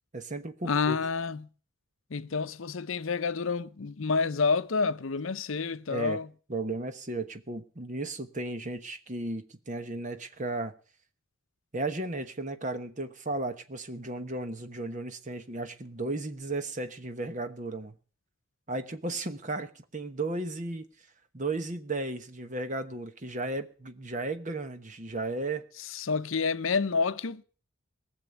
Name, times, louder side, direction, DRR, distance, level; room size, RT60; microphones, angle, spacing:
voice 1, 0.1-1.0 5.9-6.2 6.5-10.7 11.7-17.9 18.7-20.8 21.3-25.6, right 2 dB, 35° right, 1.1 m, -34 dB
voice 2, 0.6-1.5 2.1-6.3 25.9-27.4, left 4 dB, 70° left, 0.7 m, -29 dB
19.0 x 7.1 x 8.1 m
head